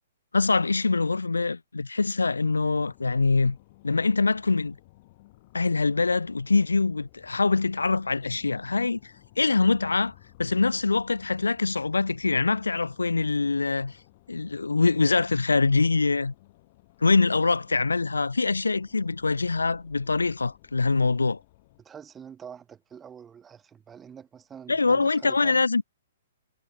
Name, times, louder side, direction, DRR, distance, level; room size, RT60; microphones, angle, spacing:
voice 1, 0.3-3.6 3.8-4.8 5.5-10.1 10.4-13.9 14.3-16.3 17.0-21.4 24.7-25.8, left 3 dB, 85° left, 0.4 m, -24 dB
sound 1, 2.3-21.8, left 19 dB, 45° left, 4.5 m, -57 dB
voice 2, 21.8-25.6, right 7 dB, 15° right, 7.1 m, -46 dB
figure-of-eight pair, 120°, 0 cm